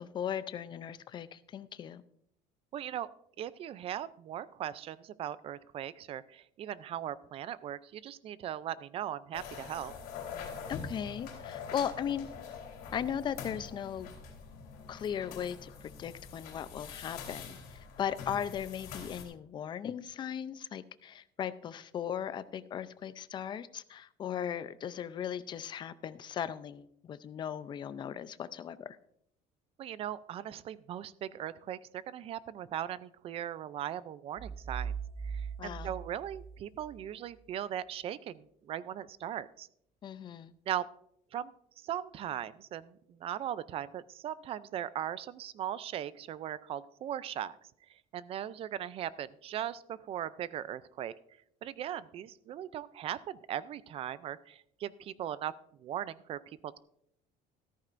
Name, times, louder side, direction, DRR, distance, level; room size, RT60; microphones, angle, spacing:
voice 1, 0.0-2.0 10.7-12.3 12.9-14.1 14.9-28.9 35.6-35.9 40.0-40.5, left 9 dB, 30° left, 14 dB, 0.5 m, -38 dB
voice 2, 2.7-3.1 3.4-9.9 29.8-34.9 35.2-39.7 40.7-40.9 41.3-47.6 47.9-51.1 51.6-55.5 55.8-56.8, right 10 dB, 35° right, 17 dB, 0.4 m, -39 dB
sound 1, 9.3-19.2, left 5 dB, 65° left, 3.5 m, -45 dB
sound 2, 34.4-37.0, right 6 dB, 80° right, 2.0 m, -40 dB
14.0 x 13.5 x 2.5 m, 0.69 s
cardioid pair, 170°, 16 cm